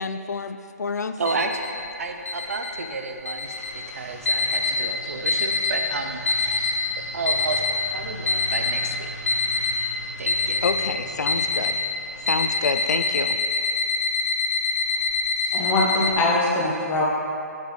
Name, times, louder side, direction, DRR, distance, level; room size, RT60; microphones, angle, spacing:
voice 1, 0.0-1.2 10.6-11.8 12.3-13.4, left 4 dB, 75° left, 9 dB, 0.4 m, -28 dB
voice 2, 1.2-6.8 7.1-7.6 7.9-9.1 10.2-10.6, right 3 dB, 60° right, 5 dB, 0.6 m, -31 dB
sound 1, 1.3-1.7 2.3-2.7 3.3-3.7 4.3-4.8 5.3-5.8 6.3-6.8 7.3-7.8 8.3-8.8 9.3-9.8 10.3-10.8 11.3-11.8 12.3-16.1, left 3 dB, 55° left, 0.8 m, -24 dB
sound 2, 3.4-13.3, equal, 15° right, 1.4 m, -41 dB
voice 3, 15.4-17.0, left 2 dB, 15° left, -4 dB, 0.9 m, -22 dB
7.5 x 5.4 x 3.3 m, 2.6 s
figure-of-eight pair, 145°, 9 cm